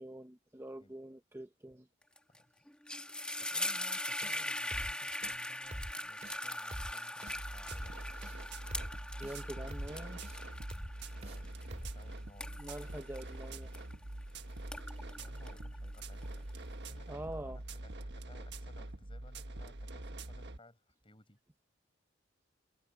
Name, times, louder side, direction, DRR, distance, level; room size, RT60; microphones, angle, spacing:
voice 1, 0.0-1.9 9.2-10.2 12.6-13.7 17.1-17.6, right 1 dB, 10° right, 0.7 m, -45 dB
sound 1, 2.2-2.4 2.7-14.2 14.6-16.5, left 1 dB, 5° left, 1.5 m, -41 dB
voice 2, 2.3-2.7 3.4-8.0 11.2-12.6 15.1-21.4, left 1 dB, 25° left, 5.2 m, -60 dB
sound 2, 4.2-4.4 4.7-4.9 5.2-5.4 5.7-5.9 6.2-6.4 6.7-6.9 7.2-7.4 7.7-7.9 8.2-8.4 8.7-8.9 9.2-9.4 9.7-9.9 10.2-10.4 10.7-10.9 11.2-11.4 11.7-11.9, right 1 dB, 35° right, 2.2 m, -43 dB
sound 3, 7.3-20.6, right 1 dB, 60° right, 1.4 m, -45 dB
head